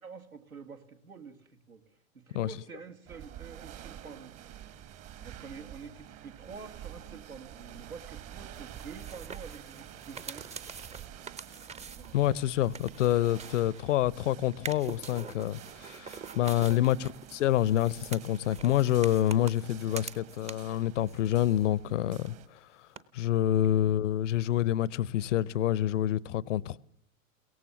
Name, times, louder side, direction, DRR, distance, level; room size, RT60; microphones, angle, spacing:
voice 1, 0.0-1.8 2.1-4.3 5.2-10.5 12.0-12.2 16.6-16.9 23.6-23.7, right 5 dB, 80° right, 2.4 m, -47 dB
sound 1, 3.1-22.5, right 11 dB, 35° right, 1.6 m, -49 dB
sound 2, 8.6-14.1 14.5-20.8 21.1-21.9 22.2-22.3 23.0-23.1, right 5 dB, 15° right, 0.8 m, -46 dB
voice 2, 12.1-22.3 23.1-26.8, left 13 dB, 60° left, 0.7 m, -27 dB
22.0 x 18.0 x 7.1 m
figure-of-eight pair, 85°, 42 cm